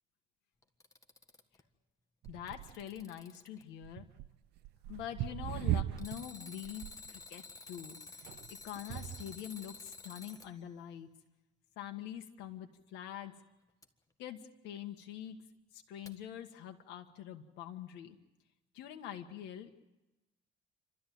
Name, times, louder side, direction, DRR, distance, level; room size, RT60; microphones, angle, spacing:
Alarm, 0.6-1.6 2.2-3.6 6.0-10.5 13.8-13.9 16.1-16.2, left 3 dB, 20° left, 1.6 m, -51 dB
sound 1, 2.2-3.0 3.8-6.3 6.6-7.1 8.2-9.4 10.2-10.3, right 13 dB, 80° right, 0.7 m, -38 dB
voice 1, 2.3-4.1 4.9-11.1 11.8-13.4 14.2-15.4 15.7-18.2 18.7-19.7, left 10 dB, 85° left, 4 dB, 1.6 m, -45 dB
28.5 x 13.0 x 9.3 m, 1.0 s
cardioid pair, 110°, 17 cm